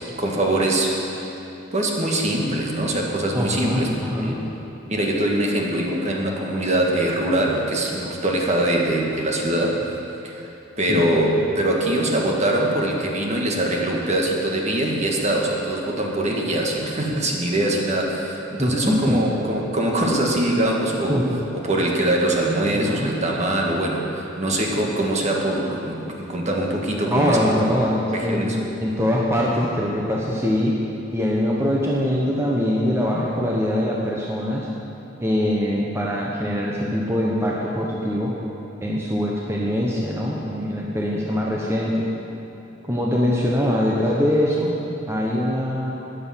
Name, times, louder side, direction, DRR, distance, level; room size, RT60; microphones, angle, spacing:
voice 1, 0.2-1.3 1.7-3.9 4.2-4.5 4.9-9.8 10.2-10.5 10.8-21.3 21.5-27.5 28.1-28.7, right 1 dB, 35° right, -1 dB, 1.7 m, -23 dB
voice 2, 3.3-4.3 10.9-11.0 18.6-19.2 20.3-20.4 21.1-21.4 22.7-23.1 27.1-28.5 28.8-30.8 31.1-34.7 35.2-38.3 38.8-42.1 42.9-44.7 45.1-46.0, equal, 15° right, -4 dB, 1.0 m, -23 dB
13.0 x 10.0 x 5.7 m, 3.0 s
head